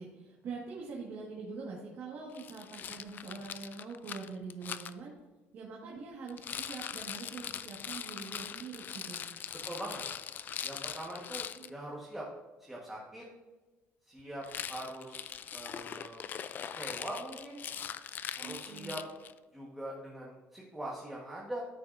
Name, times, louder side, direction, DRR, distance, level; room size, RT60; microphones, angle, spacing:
voice 1, 0.0-5.1 5.5-9.2 11.5-11.7 18.4-19.0, right 4 dB, 50° right, -3 dB, 1.6 m, -44 dB
Rattle, 2.3-4.9 6.3-11.7 14.4-19.4, left 8 dB, 40° left, 0.3 m, -41 dB
voice 2, 9.6-10.0 10.6-12.3 12.6-13.2 14.0-16.3 16.7-17.6 18.3-19.0 19.5-21.6, right 1 dB, 5° right, -4 dB, 1.3 m, -42 dB
13.5 x 5.8 x 2.5 m, 1.2 s
cardioid pair, 140°, 5 cm